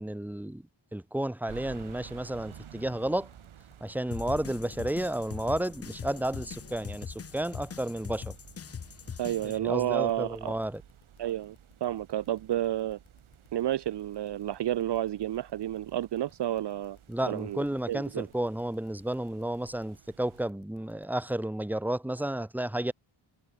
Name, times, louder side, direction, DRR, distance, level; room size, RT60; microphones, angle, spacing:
voice 1, 0.0-3.3 3.8-8.3 9.4-10.8 17.1-22.9, right 1 dB, 5° right, 1.4 m, -32 dB
sound 1, 1.5-20.5, right 9 dB, 85° right, 3.3 m, -54 dB
sound 2, 2.0-21.3, left 9 dB, 80° left, 4.7 m, -63 dB
sound 3, 4.1-9.6, left 7 dB, 30° left, 0.7 m, -41 dB
voice 2, 9.2-10.5 11.2-11.6 11.8-13.0 13.5-17.0 17.3-18.3, right 12 dB, 60° right, 0.6 m, -30 dB
wide cardioid pair, 155°, 47 cm